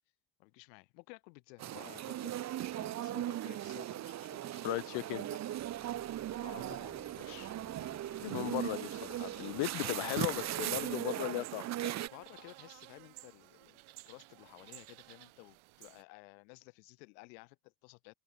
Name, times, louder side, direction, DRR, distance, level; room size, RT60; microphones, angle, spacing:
voice 1, 0.4-2.3 2.7-5.6 6.4-7.5 9.7-10.4 12.0-18.1, left 29 dB, 90° left, 1.6 m, -54 dB
sound 1, 1.6-12.1, right 13 dB, 35° right, 0.4 m, -38 dB
voice 2, 4.6-5.3 8.2-11.9, left 25 dB, 70° left, 0.5 m, -37 dB
sound 2, 5.6-11.0, left 8 dB, 30° left, 0.8 m, -56 dB
sound 3, 10.0-16.0, right 22 dB, 75° right, 1.3 m, -54 dB
open air
hypercardioid pair, 55°, 50 cm